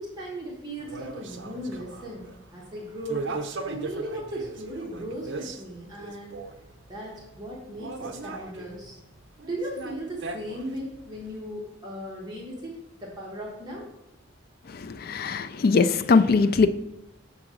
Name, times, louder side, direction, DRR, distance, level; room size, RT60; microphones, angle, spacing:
voice 1, 0.0-3.3 3.6-6.3 6.9-9.0 9.4-13.9, equal, 20° right, 1.4 m, -37 dB
sound 1, 0.8-11.4, right 3 dB, 60° right, 0.6 m, -38 dB
voice 2, 14.7-16.7, left 4 dB, 50° left, 0.4 m, -21 dB
5.9 x 3.8 x 6.1 m
head